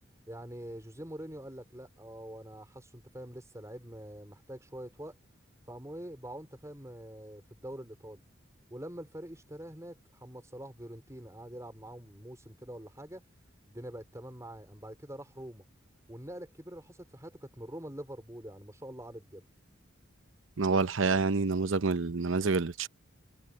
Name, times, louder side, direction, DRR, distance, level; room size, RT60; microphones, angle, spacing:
voice 1, 0.3-5.2 5.7-8.2 8.7-13.2 13.7-15.6 16.1-19.4, right 1 dB, 15° right, 4.6 m, -45 dB
voice 2, 20.6-22.9, right 4 dB, 75° right, 0.8 m, -27 dB
head